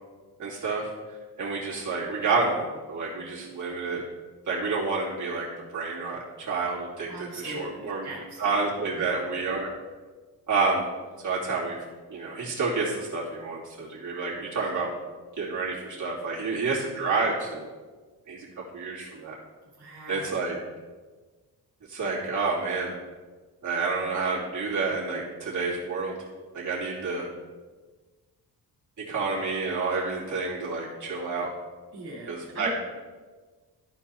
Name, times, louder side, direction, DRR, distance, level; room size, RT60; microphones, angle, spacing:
voice 1, 0.4-0.9 1.4-4.0 4.5-5.5 5.7-8.1 8.4-9.7 10.5-10.9 11.2-11.8 12.1-14.9 15.4-17.7 18.3-18.5 18.7-19.3 20.1-20.5 21.9-22.9 23.6-26.1 26.5-27.3 29.1-31.5 32.3-32.7, right 4 dB, 45° right, -6 dB, 2.7 m, -29 dB
voice 2, 7.1-9.1 19.7-20.4 31.9-32.7, right 2 dB, 70° right, -5 dB, 2.3 m, -41 dB
13.0 x 4.5 x 4.3 m, 1.3 s
wide cardioid pair, 110°, 40 cm